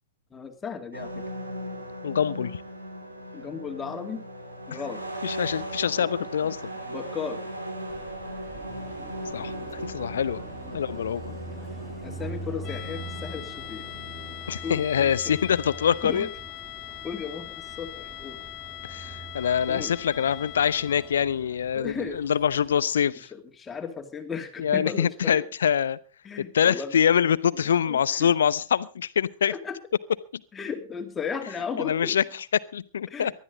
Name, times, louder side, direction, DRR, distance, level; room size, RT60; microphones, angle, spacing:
voice 1, 0.3-1.1 3.3-4.2 4.7-5.0 6.9-7.5 10.7-10.8 12.0-13.9 14.6-15.1 16.0-16.3 17.0-18.4 19.7-19.9 21.7-22.2 23.3-25.4 26.2-27.0 27.9-28.3 29.5-29.8 30.5-32.2 33.1-33.3, left 6 dB, 15° left, 5 dB, 2.5 m, -35 dB
sound 1, 0.9-14.8, right 1 dB, 80° right, 3.3 m, -38 dB
voice 2, 2.0-2.6 4.7-4.8 5.2-6.6 9.3-10.4 10.7-11.3 14.5-16.3 18.9-23.3 24.6-26.0 26.4-29.5 30.3-30.4 31.8-33.3, left 8 dB, 65° left, 18 dB, 0.7 m, -25 dB
Car passing by, 7.9-22.8, right 2 dB, 10° right, 2.3 m, -43 dB
sound 2, 12.6-21.3, left 16 dB, 35° left, 1.8 m, -41 dB
19.5 x 12.5 x 4.0 m, 0.35 s
figure-of-eight pair, 100°, 0 cm